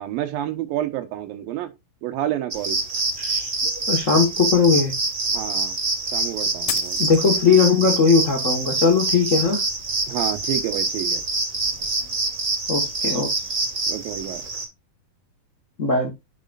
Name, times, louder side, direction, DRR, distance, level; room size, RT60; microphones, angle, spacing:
voice 1, 0.0-1.7 2.0-2.8 5.3-5.8 6.1-7.0 10.1-11.2 13.9-14.4, right 12 dB, 90° right, 2.9 m, -29 dB
sound 1, 2.5-14.6, right 3 dB, 35° right, 1.5 m, -26 dB
voice 2, 3.2-3.5 3.9-4.9 7.0-9.6 12.7-13.3 15.8-16.1, left 5 dB, 55° left, 0.8 m, -19 dB
sound 2, 6.7-7.7, left 13 dB, 85° left, 2.5 m, -32 dB
9.2 x 6.2 x 2.5 m
omnidirectional pair, 4.0 m